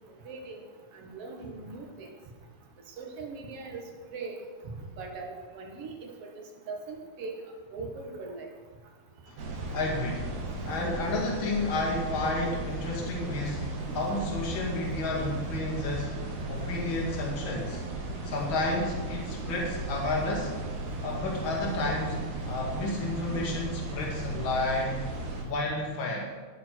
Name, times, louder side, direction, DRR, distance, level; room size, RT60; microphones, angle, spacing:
voice 1, 0.2-0.6 0.9-2.1 3.0-3.8 4.1-4.4 5.0-6.3 6.7-7.3 7.7-8.5, right 4 dB, 55° right, 2 dB, 2.4 m, -40 dB
sound 1, 9.4-25.4, right 2 dB, 80° right, 3.3 m, -36 dB
voice 2, 9.7-10.3 10.6-16.1 16.5-17.8 18.2-20.5 21.0-22.2 22.5-25.0 25.4-26.3, left 2 dB, 45° left, -2 dB, 2.8 m, -31 dB
19.0 x 7.2 x 4.6 m, 1.5 s
omnidirectional pair, 3.5 m